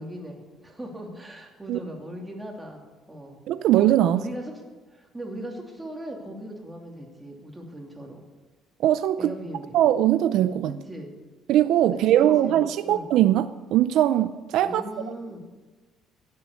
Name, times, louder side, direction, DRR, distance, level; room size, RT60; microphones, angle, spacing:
voice 1, 0.0-2.8 3.1-3.4 4.0-4.6 4.9-8.2 9.2-9.8 10.7-11.1 12.1-13.1 14.6-15.4, equal, 10° right, 0 dB, 2.8 m, -38 dB
voice 2, 3.5-4.2 8.8-9.3 9.7-10.7 11.5-14.8, right 12 dB, 65° right, 12 dB, 0.5 m, -21 dB
16.0 x 7.7 x 8.5 m, 1.3 s
cardioid pair, 130°, 0 cm